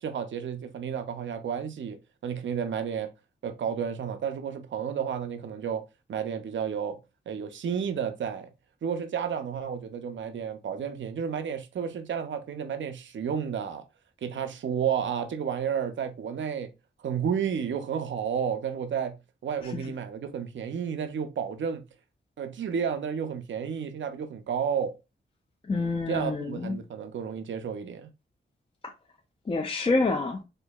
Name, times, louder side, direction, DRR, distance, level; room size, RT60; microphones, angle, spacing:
voice 1, 0.0-2.0 2.2-3.1 3.4-5.8 6.1-7.0 7.3-8.5 8.8-13.8 14.2-16.7 17.0-19.1 19.4-21.8 22.4-24.9 26.1-28.1, right 7 dB, 70° right, 0.5 m, -31 dB
voice 2, 25.7-26.8 28.8-28.9 29.5-30.4, left 3 dB, 25° left, 0.4 m, -27 dB
4.4 x 2.6 x 2.3 m
wide cardioid pair, 80°, 20 cm